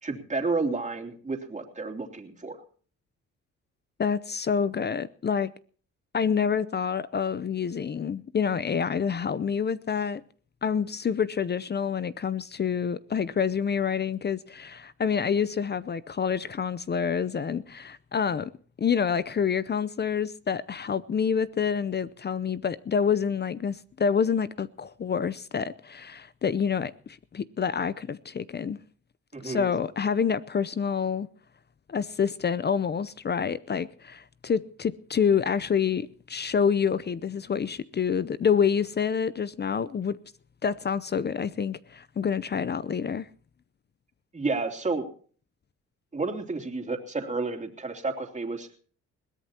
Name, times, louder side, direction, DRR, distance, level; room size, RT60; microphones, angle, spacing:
voice 1, 0.0-2.6 29.3-29.7 44.3-45.1 46.1-48.7, right 3 dB, 25° right, 3.1 m, -31 dB
voice 2, 4.0-5.5 6.1-10.2 10.6-18.5 18.8-28.8 29.4-31.3 31.9-40.2 40.6-43.3, left 7 dB, 35° left, 0.7 m, -27 dB
21.5 x 17.0 x 2.9 m
cardioid pair, 90°, 30 cm